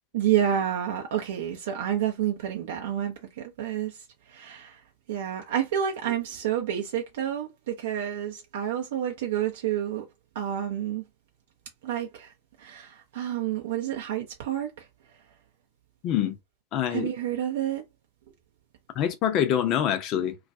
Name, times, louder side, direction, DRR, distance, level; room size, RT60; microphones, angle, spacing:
voice 1, 0.1-4.8 5.1-10.0 10.3-11.0 11.8-12.3 12.6-14.9 16.9-17.8, right 10 dB, 55° right, 0.5 m, -29 dB
voice 2, 16.0-16.4 16.7-17.1 19.0-20.4, left 10 dB, 35° left, 0.5 m, -25 dB
2.3 x 2.2 x 2.6 m
figure-of-eight pair, 90°, 0 cm